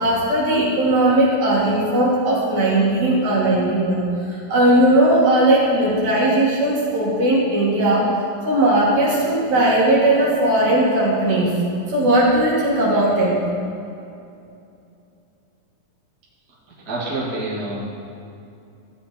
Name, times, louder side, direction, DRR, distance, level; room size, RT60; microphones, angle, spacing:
voice 1, 0.0-4.0 4.3-8.1 8.5-11.5 11.9-13.4, right 1 dB, 60° right, -6 dB, 3.4 m, -18 dB
voice 2, 16.9-17.8, right 2 dB, 30° right, -6 dB, 2.2 m, -26 dB
14.5 x 9.1 x 4.4 m, 2.6 s
omnidirectional pair, 3.8 m